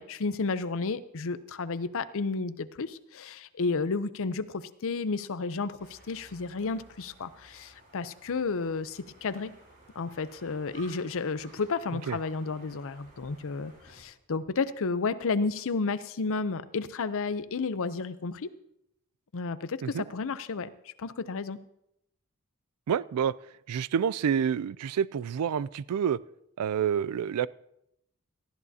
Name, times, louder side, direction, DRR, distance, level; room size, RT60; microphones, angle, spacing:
voice 1, 0.0-9.5 10.0-18.5 19.3-21.6, left 4 dB, 65° left, 14 dB, 0.6 m, -32 dB
sound 1, 5.8-14.0, right 2 dB, 40° right, 4.8 m, -56 dB
voice 2, 22.9-23.3 23.7-26.2 26.6-27.5, right 8 dB, 85° right, 20 dB, 0.4 m, -28 dB
18.5 x 13.5 x 2.8 m, 0.80 s
head